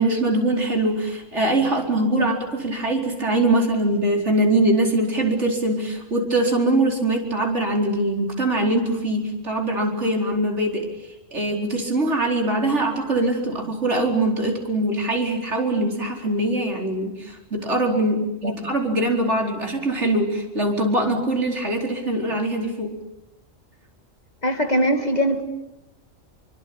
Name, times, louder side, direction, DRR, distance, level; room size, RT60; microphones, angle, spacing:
voice 1, 0.0-10.9 11.3-22.9, right 1 dB, 60° right, 1 dB, 4.8 m, -22 dB
voice 2, 24.4-25.4, equal, 30° left, 5 dB, 2.6 m, -21 dB
28.0 x 24.0 x 8.7 m, 0.95 s
omnidirectional pair, 1.4 m